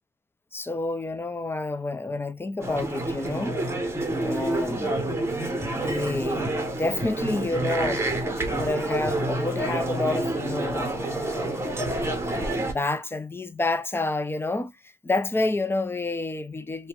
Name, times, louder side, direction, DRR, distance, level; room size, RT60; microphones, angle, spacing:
voice 1, 0.5-3.6 4.2-5.0 5.7-8.1 8.5-11.7 12.3-14.7 15.0-16.9, left 2 dB, 10° left, 0.4 m, -29 dB
sound 1, 2.6-12.7, right 2 dB, 15° right, 0.8 m, -28 dB
2.8 x 2.2 x 2.8 m
cardioid pair, 90°, 20 cm